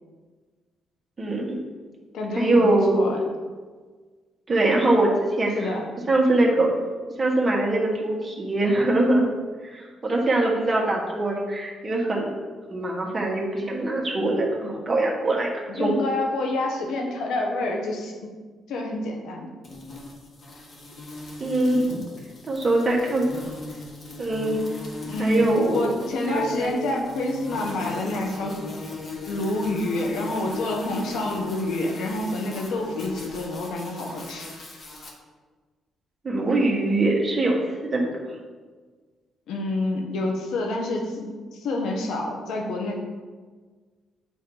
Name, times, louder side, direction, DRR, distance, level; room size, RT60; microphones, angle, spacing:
voice 1, 1.2-1.6 2.3-3.0 4.5-5.1 5.4-5.7 6.1-6.7 7.2-9.3 9.6-12.3 12.7-16.0 21.4-22.0 22.5-23.3 24.2-24.7 25.2-26.0 26.2-26.8 36.2-38.3, right 2 dB, 30° right, -2 dB, 1.6 m, -23 dB
voice 2, 2.1-3.2 5.5-5.8 15.7-18.3 18.7-19.5 25.0-28.6 29.3-34.5 39.5-43.0, left 2 dB, 80° left, 1 dB, 1.2 m, -28 dB
sound 1, 19.6-35.1, left 2 dB, 45° left, 1.5 m, -39 dB
8.4 x 3.0 x 5.5 m, 1.4 s
cardioid pair, 90°, 0 cm